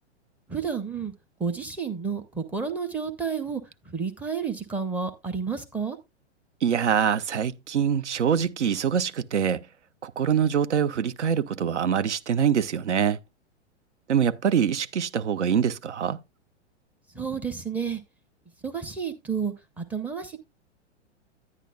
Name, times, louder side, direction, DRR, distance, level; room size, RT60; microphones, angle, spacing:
voice 1, 0.5-1.1 1.4-3.6 3.9-6.0 17.1-18.0 18.6-20.4, right 6 dB, 5° right, 0.6 m, -30 dB
voice 2, 6.6-9.6 10.0-13.2 14.1-16.2, right 8 dB, 75° right, 0.6 m, -24 dB
9.9 x 9.5 x 2.3 m
figure-of-eight pair, 105°, 35 cm